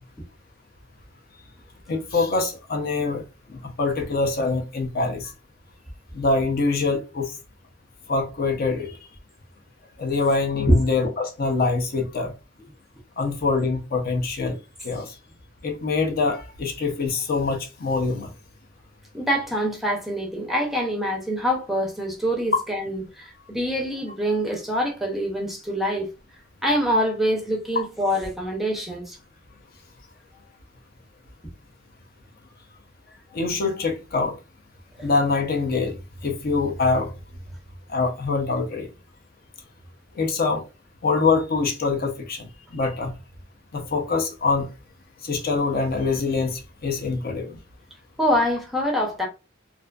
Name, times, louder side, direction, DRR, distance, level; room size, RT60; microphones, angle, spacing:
voice 1, 1.9-3.2 3.5-5.3 6.1-7.3 8.1-8.9 10.0-12.3 13.2-14.6 14.8-15.1 15.6-18.3 33.3-34.3 35.0-35.9 36.2-37.1 37.9-38.9 40.2-40.6 41.0-42.4 42.7-43.1 43.7-44.7 45.2-47.6, left 3 dB, 50° left, 0.5 m, -24 dB
voice 2, 19.1-26.1 26.6-29.2 48.2-49.3, equal, ahead, 0.5 m, -24 dB
2.5 x 2.3 x 2.2 m
head